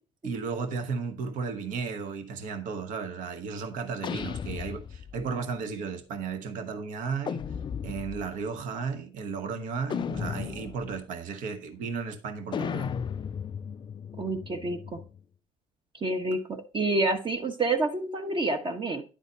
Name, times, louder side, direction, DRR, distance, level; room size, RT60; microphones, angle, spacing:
voice 1, 0.2-7.5 7.8-12.9, right 5 dB, 65° right, 1.1 m, -34 dB
sound 1, 4.0-5.3 7.2-8.3 9.9-11.0 12.5-15.2, left 7 dB, 35° left, 0.3 m, -35 dB
voice 2, 14.2-15.0 16.0-19.0, right 2 dB, 35° right, 1.1 m, -28 dB
10.0 x 4.0 x 4.0 m
supercardioid pair, 70°, 15 cm